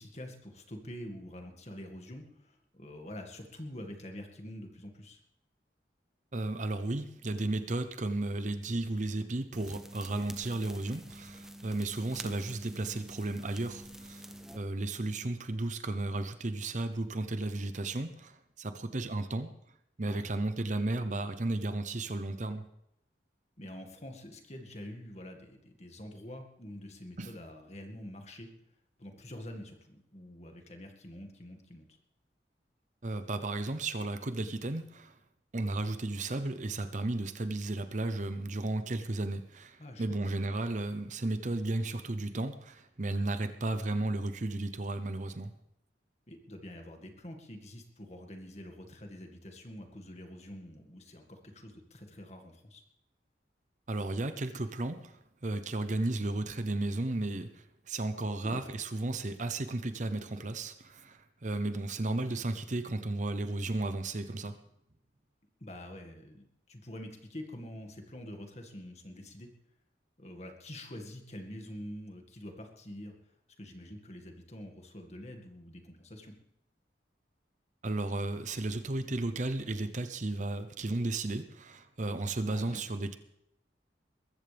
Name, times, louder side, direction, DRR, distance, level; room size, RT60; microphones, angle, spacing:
voice 1, 0.0-5.2 12.2-12.3 20.0-20.3 23.6-28.5 29.0-31.9 39.8-40.2 46.3-52.8 58.4-58.7 65.6-69.5 70.2-73.2 73.6-76.4 82.5-82.8, left 1 dB, 40° left, 2.0 m, -46 dB
voice 2, 6.3-14.3 14.5-19.5 20.0-22.7 27.2-27.3 33.0-35.1 35.5-45.5 53.9-64.6 77.8-83.1, right 2 dB, 40° right, 0.8 m, -34 dB
sound 1, 9.5-14.6, right 1 dB, 5° right, 0.8 m, -48 dB
21.5 x 14.5 x 3.5 m
head